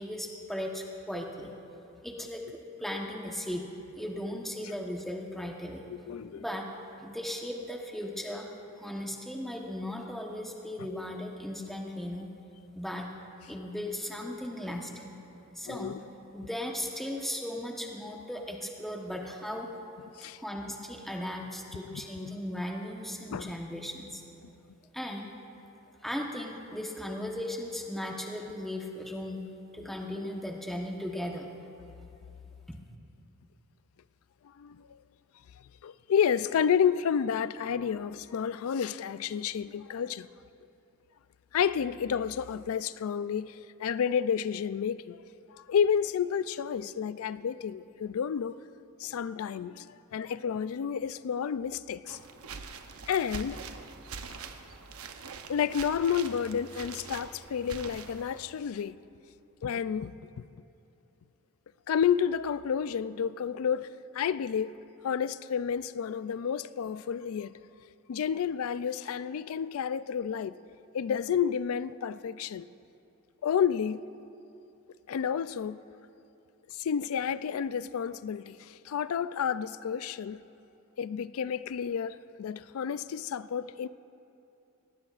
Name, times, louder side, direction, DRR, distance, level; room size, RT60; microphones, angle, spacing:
voice 1, 0.0-1.5 2.0-3.7 4.0-5.8 6.3-6.7 7.0-8.5 8.8-12.3 12.7-13.1 13.5-15.2 15.5-16.0 16.3-19.7 20.4-24.2 24.9-25.3 26.0-29.4 29.7-31.5 32.7-32.8, left 1 dB, ahead, 1.0 m, -37 dB
voice 2, 5.9-6.4 15.6-16.0 20.2-20.4 23.3-23.5 34.6-35.0 35.8-40.3 41.5-45.2 45.6-48.5 49.0-52.2 53.1-53.6 55.5-59.0 59.6-60.1 60.4-60.5 61.9-63.9 64.1-64.7 65.0-67.5 68.1-70.6 70.9-72.7 73.4-74.0 75.1-75.8 76.7-80.4 81.0-83.9, left 7 dB, 75° left, 0.3 m, -30 dB
sound 1, 52.1-58.5, right 5 dB, 85° right, 0.8 m, -44 dB
18.5 x 18.5 x 2.5 m
head